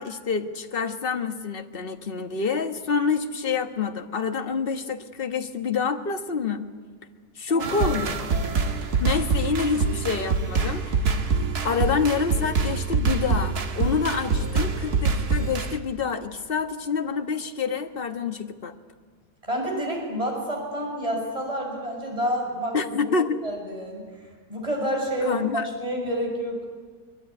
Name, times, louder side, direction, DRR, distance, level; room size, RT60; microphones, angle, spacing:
voice 1, 0.0-6.7 7.4-8.2 9.0-11.0 11.6-18.7 22.7-23.4 25.2-25.7, left 5 dB, 40° left, 6 dB, 1.4 m, -27 dB
voice 2, 7.5-7.9 19.4-22.8 23.1-26.6, equal, 20° right, 0 dB, 6.3 m, -29 dB
sound 1, 7.6-15.8, right 4 dB, 75° right, 2.1 m, -25 dB
23.5 x 22.5 x 9.7 m, 1.5 s
omnidirectional pair, 1.7 m